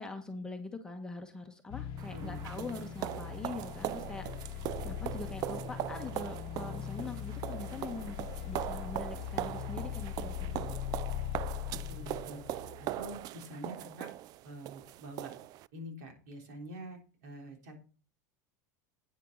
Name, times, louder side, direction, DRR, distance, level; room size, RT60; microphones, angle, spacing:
voice 1, 0.0-4.5 4.8-10.6, left 3 dB, 10° left, 3 dB, 1.3 m, -43 dB
sound 1, 1.7-13.2, left 10 dB, 50° left, 0.9 m, -41 dB
sound 2, 2.0-15.7, right 14 dB, 45° right, 0.4 m, -40 dB
voice 2, 2.1-2.4 11.7-12.4 12.8-14.1 14.4-15.3 15.7-17.8, right 1 dB, 75° right, 2 dB, 3.7 m, -46 dB
9.3 x 8.3 x 4.0 m, 0.38 s
supercardioid pair, 120°, 9 cm